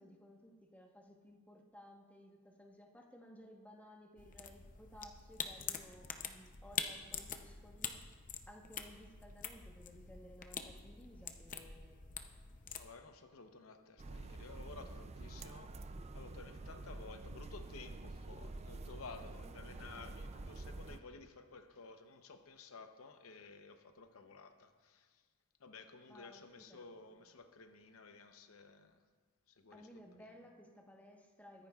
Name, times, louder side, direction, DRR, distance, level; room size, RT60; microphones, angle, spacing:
voice 1, 0.0-8.0 8.5-12.1 26.1-26.9 29.7-31.7, equal, 5° left, 0 dB, 1.1 m, -58 dB
sound 1, 4.2-12.9, left 7 dB, 40° left, 0.7 m, -45 dB
voice 2, 12.8-25.3 25.6-29.0 29.5-29.9 30.2-30.3, left 4 dB, 80° left, 7 dB, 0.8 m, -54 dB
sound 2, 14.0-21.0, right 2 dB, 30° right, 0.4 m, -48 dB
23.0 x 9.9 x 2.4 m, 1.5 s
head